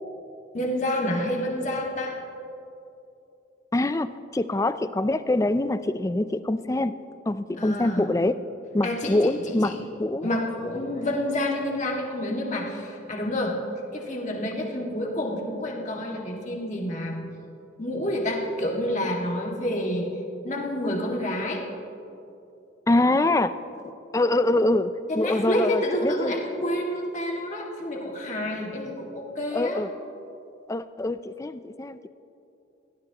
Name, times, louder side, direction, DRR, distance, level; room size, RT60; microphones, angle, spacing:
voice 1, 0.5-2.2 7.6-8.1 8.8-9.8 10.2-13.6 13.9-17.2 17.8-20.1 20.4-21.6 25.1-29.8, left 1 dB, 40° left, -1 dB, 1.9 m, -28 dB
voice 2, 3.7-6.9 7.3-8.4 8.7-9.7 10.0-10.3 22.9-23.5 23.8-26.3 29.5-29.9 30.7-32.1, left 2 dB, 15° left, 12 dB, 0.4 m, -24 dB
23.0 x 16.5 x 3.0 m, 2.8 s
head